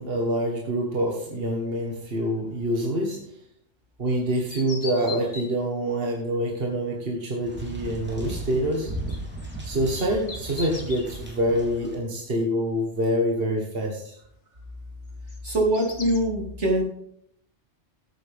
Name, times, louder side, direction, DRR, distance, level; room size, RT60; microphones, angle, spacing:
voice 1, 0.0-3.2 4.0-8.9 9.6-14.2, equal, 55° right, 0 dB, 1.8 m, -26 dB
sound 1, 4.3-5.5 8.9-11.2 15.1-16.2, left 4 dB, 60° left, 1.9 m, -40 dB
sound 2, 7.5-11.9, right 1 dB, 10° right, 3.3 m, -36 dB
voice 2, 15.4-16.8, right 1 dB, 80° right, -1 dB, 3.3 m, -23 dB
13.5 x 9.1 x 3.6 m, 0.69 s
omnidirectional pair, 1.2 m